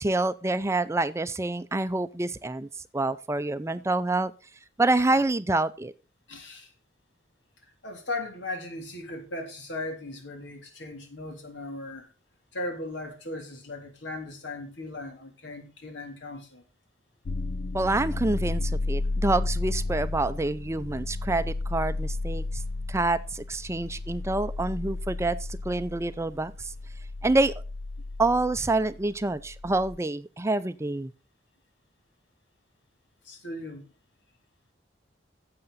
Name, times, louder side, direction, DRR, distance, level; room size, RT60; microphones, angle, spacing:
voice 1, 0.0-2.7 2.9-4.3 4.8-5.9 17.7-22.6 22.9-25.4 25.6-26.7 27.2-27.5 28.2-31.1, right 2 dB, 15° right, 0.5 m, -27 dB
voice 2, 6.3-6.7 7.8-12.1 12.5-16.6 33.2-33.9, left 2 dB, 90° left, 3.3 m, -37 dB
sound 1, 17.3-30.0, left 2 dB, 55° left, 0.5 m, -33 dB
11.5 x 7.8 x 4.1 m
head